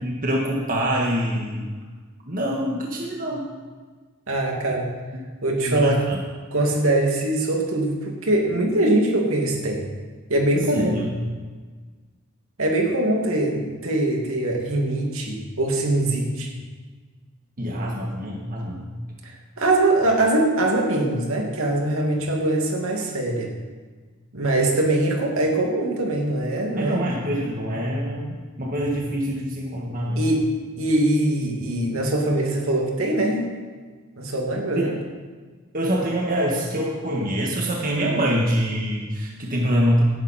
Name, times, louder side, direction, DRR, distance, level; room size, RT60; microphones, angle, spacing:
voice 1, 0.0-1.7 2.2-3.5 5.6-6.2 10.7-11.1 17.6-18.9 26.8-30.2 34.7-34.9 35.7-40.0, equal, 40° right, -2 dB, 1.8 m, -25 dB
voice 2, 4.3-4.9 5.4-6.0 6.5-9.8 10.3-11.1 12.6-16.5 19.2-19.3 19.6-23.5 24.3-27.0 30.2-30.4 30.8-33.5 34.2-34.9, right 1 dB, 70° right, 0 dB, 2.5 m, -22 dB
18.0 x 10.5 x 4.4 m, 1.4 s
head